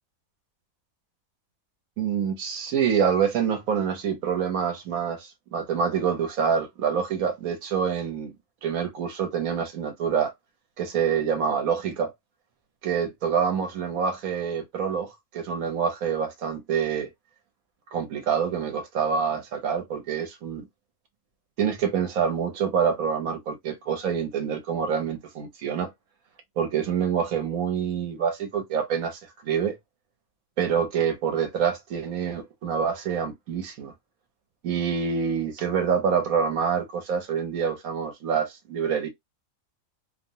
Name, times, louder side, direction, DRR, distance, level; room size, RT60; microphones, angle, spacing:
voice 1, 2.0-8.3 8.6-10.3 10.8-12.1 12.8-17.1 17.9-20.7 21.6-25.9 26.6-29.8 30.6-33.9 34.6-39.1, right 7 dB, 75° right, 1.2 m, -26 dB
2.7 x 2.1 x 2.7 m
omnidirectional pair, 1.5 m